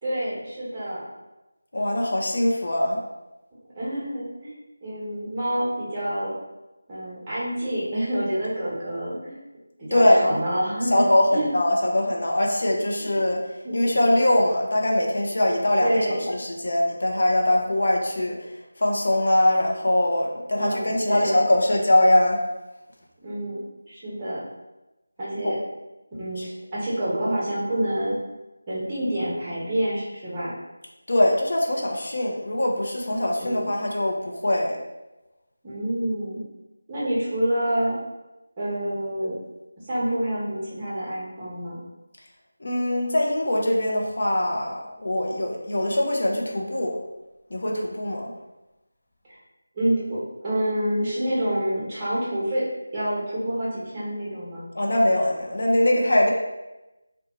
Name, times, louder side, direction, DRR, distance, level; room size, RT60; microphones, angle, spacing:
voice 1, 0.0-1.0 3.7-6.3 6.9-9.3 9.8-11.5 13.6-14.0 15.8-16.2 20.5-21.4 23.2-23.6 23.9-24.4 25.2-25.6 26.2-28.2 28.7-30.5 33.4-33.7 35.6-36.4 36.9-37.9 38.6-39.3 39.9-41.8 49.3-49.4 49.7-52.6 52.9-54.6, right 1 dB, 15° right, -8 dB, 0.9 m, -27 dB
voice 2, 1.7-3.0 9.9-10.4 10.9-13.4 13.7-16.0 16.3-18.4 18.8-22.4 25.4-25.5 31.1-34.8 42.6-47.0 47.5-48.3 54.7-56.3, left 1 dB, 55° left, -1 dB, 0.5 m, -22 dB
2.7 x 2.1 x 3.0 m, 1.0 s
figure-of-eight pair, 165°, 0 cm